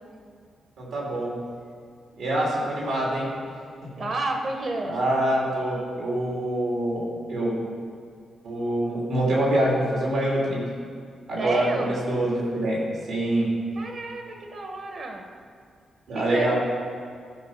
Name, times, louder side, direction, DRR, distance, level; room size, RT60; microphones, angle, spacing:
voice 1, 0.8-1.3 2.1-3.3 3.8-4.0 4.8-7.5 8.4-10.6 11.3-12.8 13.1-13.5 16.1-16.5, right 1 dB, 85° right, -5 dB, 3.0 m, -25 dB
voice 2, 4.0-5.0 11.4-11.9 13.7-15.3 16.1-16.5, right 2 dB, 50° right, 3 dB, 1.1 m, -30 dB
14.0 x 4.6 x 5.8 m, 2.1 s
cardioid pair, 135°, 0 cm